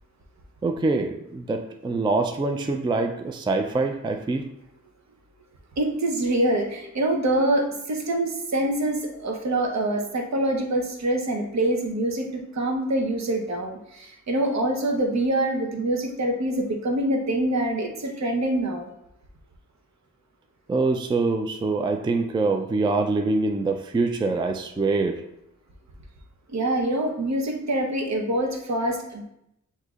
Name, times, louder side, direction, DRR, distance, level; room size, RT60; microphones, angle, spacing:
voice 1, 0.6-4.4 20.7-25.2, right 3 dB, 15° right, 5 dB, 0.3 m, -24 dB
voice 2, 5.8-18.9 26.5-29.2, right 1 dB, 60° right, 2 dB, 0.9 m, -25 dB
7.7 x 2.8 x 2.4 m, 0.80 s
cardioid pair, 85°, 30 cm